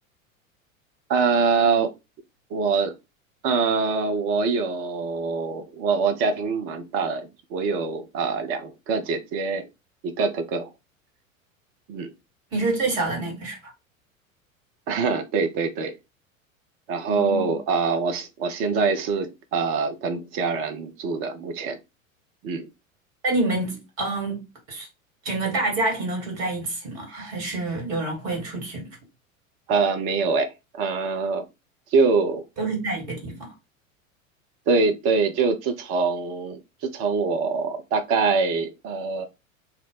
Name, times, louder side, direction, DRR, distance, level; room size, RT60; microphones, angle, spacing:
voice 1, 1.1-1.9 2.5-3.0 3.4-9.7 10.0-10.7 11.9-12.1 14.9-16.0 16.9-21.8 22.4-22.6 27.1-27.3 29.7-31.5 31.9-32.4 34.7-39.2, right 4 dB, 35° right, 0.6 m, -24 dB
voice 2, 12.5-13.6 17.1-17.6 23.2-24.4 24.7-24.9 25.2-28.9 32.6-33.5, right 2 dB, 50° right, 1.8 m, -27 dB
2.7 x 2.1 x 3.8 m
figure-of-eight pair, 85°, 41 cm